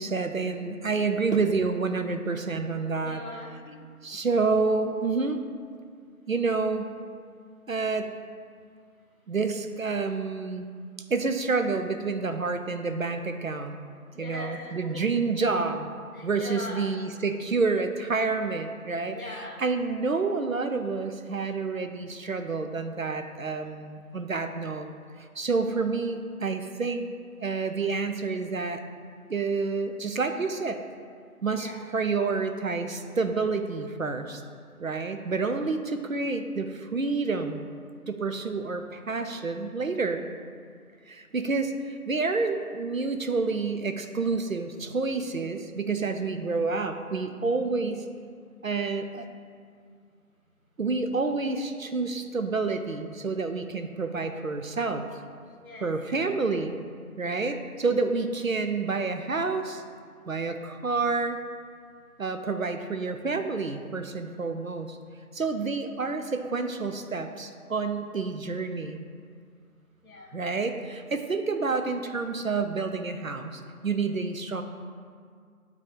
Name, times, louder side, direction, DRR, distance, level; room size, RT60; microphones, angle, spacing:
voice 1, 0.0-3.2 4.0-5.4 6.3-6.9 7.7-8.1 9.3-10.6 11.1-13.8 14.2-15.9 16.2-24.9 25.2-27.0 27.4-28.8 29.3-30.8 31.4-34.4 34.8-37.6 38.1-40.2 41.1-48.0 48.6-49.3 50.8-55.1 55.8-56.8 57.2-59.8 60.3-61.4 62.2-65.0 65.3-69.0 70.3-74.6, right 4 dB, 65° right, 7 dB, 0.5 m, -29 dB
voice 2, 3.0-3.9 4.3-4.5 14.1-15.1 16.1-16.9 19.1-19.6 31.5-31.8 55.6-55.9 57.1-57.4 70.0-70.4, left 1 dB, 65° left, -1 dB, 1.7 m, -41 dB
9.0 x 3.8 x 3.7 m, 2.1 s
figure-of-eight pair, 180°, 45 cm